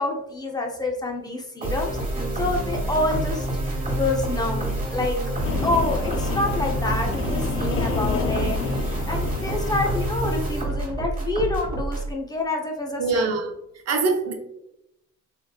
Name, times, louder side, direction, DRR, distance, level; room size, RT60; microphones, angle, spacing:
voice 1, 0.0-2.0 2.3-3.5 3.9-5.2 5.6-13.3, left 2 dB, 15° left, 1 dB, 0.7 m, -27 dB
sound 1, 1.6-12.1, right 1 dB, 25° right, 1.3 m, -27 dB
sound 2, 5.3-10.4, left 7 dB, 90° left, 0.8 m, -38 dB
sound 3, 5.4-10.3, left 5 dB, 45° left, 0.4 m, -30 dB
voice 2, 13.0-13.5 13.9-14.3, right 4 dB, 55° right, 3 dB, 0.7 m, -23 dB
3.3 x 3.1 x 2.3 m, 0.85 s
cardioid pair, 90°, 30 cm